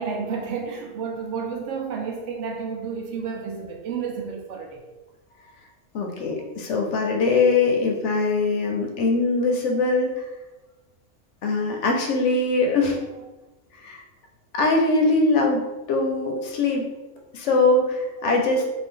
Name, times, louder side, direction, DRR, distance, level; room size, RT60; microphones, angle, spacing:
voice 1, 0.0-4.8 12.9-13.0 18.2-18.3, right 5 dB, 70° right, 1 dB, 0.8 m, -31 dB
voice 2, 5.9-10.1 11.4-13.0 13.7-14.0 14.5-15.6 15.9-16.8 17.3-18.7, left 3 dB, 70° left, 1 dB, 0.8 m, -22 dB
2.6 x 2.4 x 3.5 m, 1.1 s
omnidirectional pair, 1.4 m